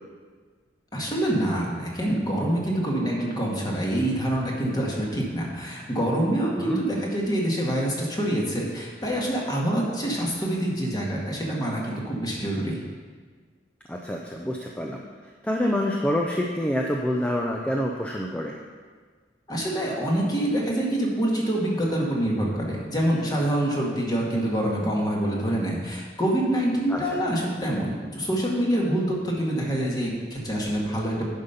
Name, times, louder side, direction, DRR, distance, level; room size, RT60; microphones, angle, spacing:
voice 1, 0.9-12.8 19.5-31.3, right 1 dB, 25° left, -3 dB, 1.8 m, -26 dB
voice 2, 13.9-15.0 15.4-18.5 26.9-27.2, equal, 5° left, 0 dB, 0.6 m, -27 dB
10.5 x 5.3 x 5.7 m, 1.5 s
head